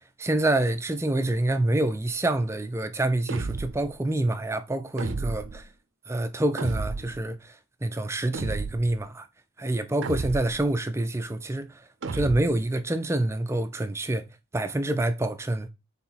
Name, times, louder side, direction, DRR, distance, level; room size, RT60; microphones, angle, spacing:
voice 1, 0.2-5.6 6.1-7.6 7.8-9.3 9.6-11.8 12.1-14.2 14.5-15.7, right 1 dB, 15° right, 0.4 m, -27 dB
sound 1, 3.3-3.9 5.0-5.7 6.6-7.2 8.3-9.0 10.0-10.7 12.0-12.7, right 3 dB, 65° right, 0.5 m, -32 dB
4.5 x 3.8 x 5.5 m
head